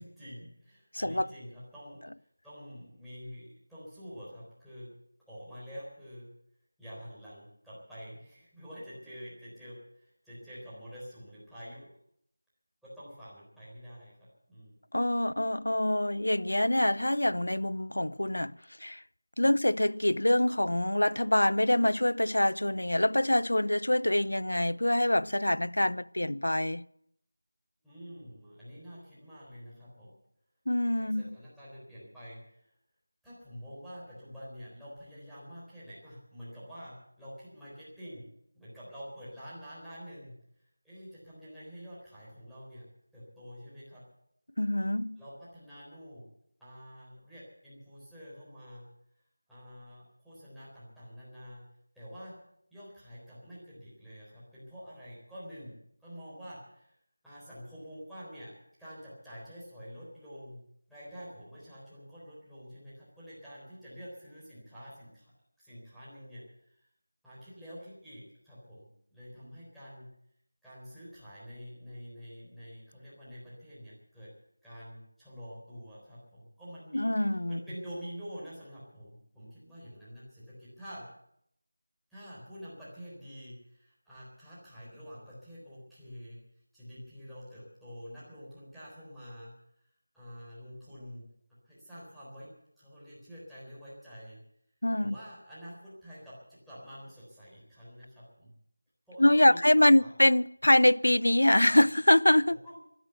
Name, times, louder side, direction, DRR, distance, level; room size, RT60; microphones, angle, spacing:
voice 1, 0.0-2.0 2.4-4.9 5.3-6.3 6.8-11.9 12.8-14.7 19.4-19.5 27.8-30.1 30.9-32.7 33.2-38.3 38.5-40.3 40.8-42.9 43.1-44.0 45.2-46.2 46.6-48.8 49.5-51.6 51.9-52.4 52.7-55.7 56.0-57.0 57.2-58.5 58.8-60.6 60.9-65.3 65.6-66.8 67.2-70.1 70.6-74.3 74.6-81.0 82.1-86.4 86.7-89.5 90.1-91.3 91.6-92.5 92.8-94.4 95.0-98.5 99.1-99.6 100.0-100.1 102.6-102.8, equal, ahead, 4.0 m, -47 dB
voice 2, 0.9-1.3 14.9-19.0 19.4-26.8 30.7-31.4 44.6-45.2 76.9-77.6 94.8-95.1 99.2-102.6, left 1 dB, 85° left, 0.6 m, -25 dB
14.5 x 12.5 x 7.9 m
figure-of-eight pair, 175°, 0 cm